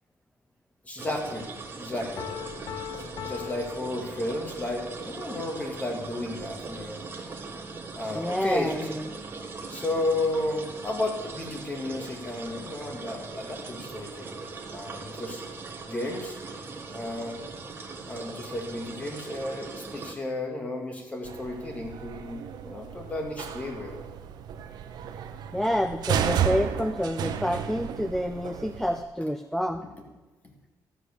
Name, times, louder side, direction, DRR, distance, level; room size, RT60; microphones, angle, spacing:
voice 1, 0.8-2.3 2.9-7.0 7.9-8.9 9.7-14.4 14.7-15.4 15.9-16.4 16.9-17.3 18.1-24.0 30.4-30.5, left 2 dB, 20° left, 1 dB, 2.1 m, -33 dB
sound 1, 1.0-20.1, right 4 dB, 30° right, 1.4 m, -40 dB
Piano, 2.2-4.7, left 12 dB, 85° left, 0.7 m, -39 dB
voice 2, 8.1-9.1 25.5-29.9, equal, 5° left, 9 dB, 0.4 m, -28 dB
sound 2, 21.3-29.0, right 8 dB, 70° right, 0.9 m, -33 dB
13.5 x 7.9 x 6.7 m, 1.1 s
cardioid pair, 160°, 7 cm